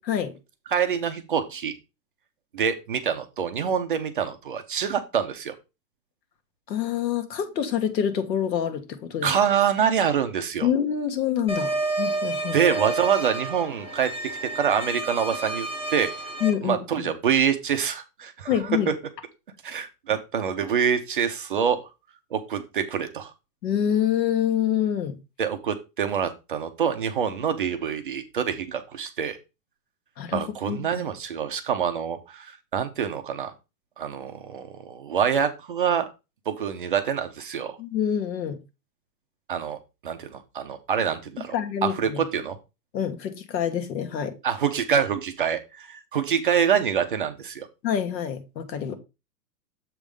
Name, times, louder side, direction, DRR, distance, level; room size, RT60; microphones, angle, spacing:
voice 1, 0.7-1.7 2.5-5.6 9.2-10.7 12.5-16.2 16.6-18.9 19.6-21.8 22.3-23.3 25.4-29.4 30.3-33.5 34.0-36.1 36.5-37.8 39.5-39.8 40.0-41.5 41.8-42.6 44.4-47.7, right 7 dB, 35° right, 7 dB, 0.4 m, -26 dB
voice 2, 6.7-9.3 10.6-12.6 16.4-17.1 18.5-18.9 23.6-25.2 30.2-30.8 37.8-38.6 41.5-42.2 42.9-44.3 47.8-48.9, left 9 dB, 80° left, 8 dB, 1.7 m, -26 dB
sound 1, 11.5-16.5, right 2 dB, 10° left, 0.8 m, -30 dB
7.3 x 3.4 x 5.2 m, 0.27 s
supercardioid pair, 170°, 50 cm